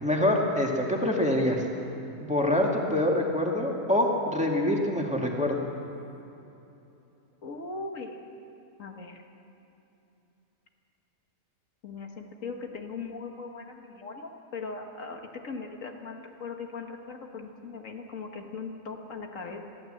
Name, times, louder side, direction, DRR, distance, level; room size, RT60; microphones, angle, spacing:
voice 1, 0.0-1.6 2.2-5.6, left 1 dB, 5° right, -1 dB, 2.1 m, -25 dB
voice 2, 7.4-8.2 8.8-9.2 11.8-19.6, left 4 dB, 70° left, 3 dB, 1.9 m, -39 dB
22.5 x 15.0 x 7.8 m, 2.9 s
omnidirectional pair, 1.4 m